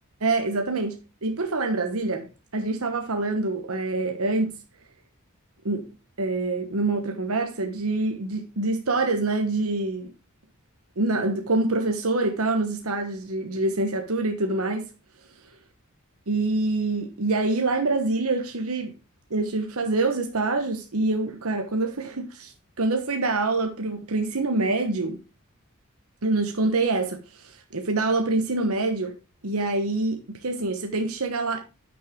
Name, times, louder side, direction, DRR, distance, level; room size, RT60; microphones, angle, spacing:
voice 1, 0.2-4.5 5.6-5.9 6.2-10.1 11.0-14.9 16.3-18.9 19.3-25.2 26.2-29.1 29.4-31.6, right 2 dB, 75° right, 1.1 m, -26 dB
9.7 x 6.2 x 3.6 m
head